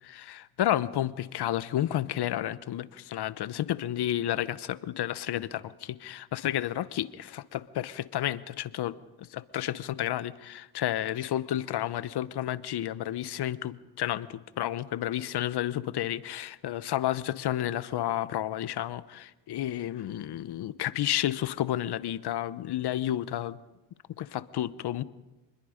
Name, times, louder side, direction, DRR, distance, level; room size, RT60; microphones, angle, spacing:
voice 1, 0.1-23.6 24.2-25.0, left 12 dB, 65° left, 16 dB, 1.0 m, -31 dB
25.5 x 21.0 x 5.1 m, 1.1 s
cardioid pair, 75°, 43 cm